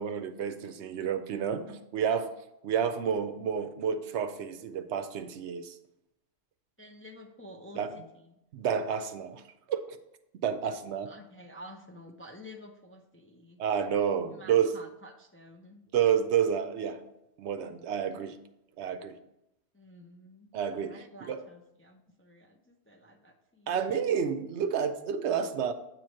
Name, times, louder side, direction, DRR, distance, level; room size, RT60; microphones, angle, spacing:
voice 1, 0.0-2.3 2.6-5.8 7.8-7.9 8.5-9.4 9.7-10.0 10.4-11.1 13.6-14.7 15.9-17.0 17.4-18.4 18.8-19.1 20.5-21.0 21.3-21.4 23.7-25.7, right 8 dB, 80° right, 10 dB, 0.9 m, -30 dB
voice 2, 6.8-8.3 11.1-13.6 14.3-15.8 19.7-23.9, equal, 20° left, 2 dB, 0.4 m, -50 dB
7.9 x 3.1 x 6.3 m, 0.86 s
omnidirectional pair, 1.1 m